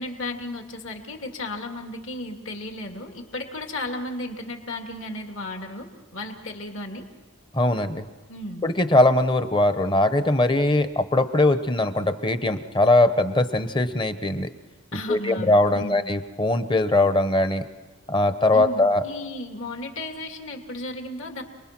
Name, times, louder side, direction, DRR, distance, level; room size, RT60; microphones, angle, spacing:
voice 1, 0.0-5.9 6.1-7.0 8.3-8.6 14.9-16.0 18.5-21.4, left 1 dB, 60° left, 3 dB, 2.7 m, -34 dB
voice 2, 7.5-8.1 8.6-14.5 15.1-17.6 18.1-19.0, left 2 dB, 20° left, 10 dB, 1.0 m, -21 dB
28.0 x 21.0 x 6.1 m, 1.2 s
head